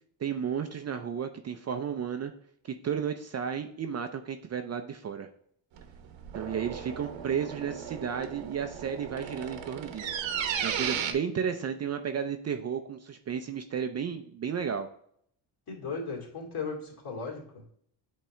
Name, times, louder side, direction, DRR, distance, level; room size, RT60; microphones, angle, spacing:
voice 1, 0.2-2.3 2.6-5.3 6.3-10.2 10.6-14.9, right 7 dB, 35° right, 6 dB, 0.4 m, -33 dB
sound 1, 5.8-11.1, right 8 dB, 70° right, 1.0 m, -35 dB
voice 2, 15.7-17.7, left 4 dB, 50° left, -2 dB, 2.5 m, -37 dB
8.4 x 3.7 x 3.2 m, 0.66 s
cardioid pair, 135°, 47 cm